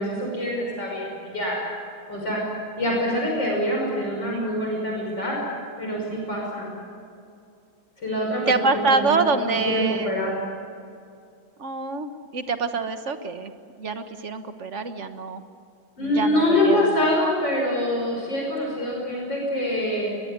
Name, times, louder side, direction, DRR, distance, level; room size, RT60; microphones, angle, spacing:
voice 1, 0.0-1.6 2.1-2.5 2.8-5.4 5.8-6.7 8.0-10.3 16.0-20.1, left 1 dB, 60° left, -2 dB, 6.6 m, -25 dB
voice 2, 8.5-10.1 11.6-13.5 13.8-15.4 16.0-17.1, right 4 dB, 40° right, 9 dB, 1.4 m, -26 dB
22.0 x 22.0 x 9.7 m, 2.4 s
omnidirectional pair, 2.2 m